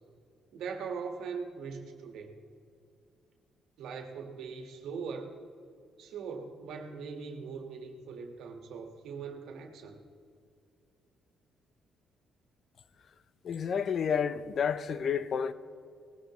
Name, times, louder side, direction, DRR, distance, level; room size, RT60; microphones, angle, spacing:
voice 1, 0.5-2.3 3.8-5.4 6.0-10.0, right 5 dB, 80° right, 1.5 m, -41 dB
voice 2, 13.4-15.5, left 7 dB, 55° left, 0.6 m, -30 dB
18.5 x 15.5 x 3.1 m
cardioid pair, 90°, 0 cm